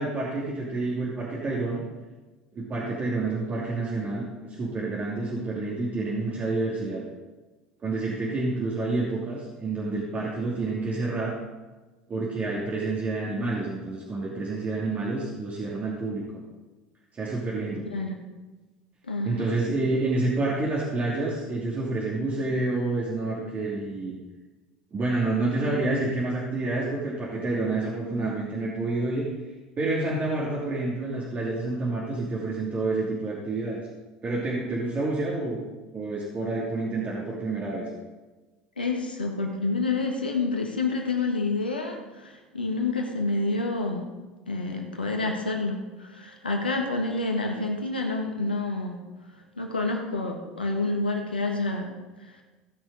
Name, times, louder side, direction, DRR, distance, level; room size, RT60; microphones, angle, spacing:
voice 1, 0.0-1.8 2.5-7.0 7.8-11.3 12.1-16.4 17.1-17.9 19.2-24.1 24.9-29.2 29.8-33.8 34.2-35.6 35.9-37.9, right 2 dB, 30° right, -5 dB, 2.8 m, -28 dB
voice 2, 19.1-19.5 38.8-44.0 44.5-49.0 49.6-51.9 52.2-52.4, left 3 dB, 90° left, 2 dB, 1.6 m, -28 dB
17.0 x 6.3 x 4.9 m, 1.2 s
figure-of-eight pair, 70°, 5 cm